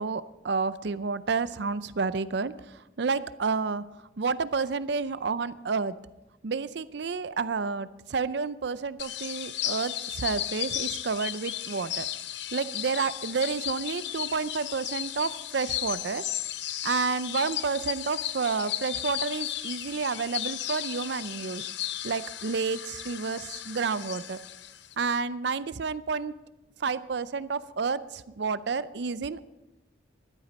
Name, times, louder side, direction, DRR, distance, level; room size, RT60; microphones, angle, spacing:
voice 1, 0.0-2.5 3.0-3.8 4.2-5.9 6.4-12.1 12.5-16.2 16.8-21.7 22.0-24.4 25.0-26.3 26.8-29.4, right 4 dB, 60° right, 15 dB, 0.5 m, -30 dB
sound 1, 9.0-24.9, left 12 dB, 60° left, 0.6 m, -35 dB
14.0 x 11.5 x 5.2 m, 0.99 s
head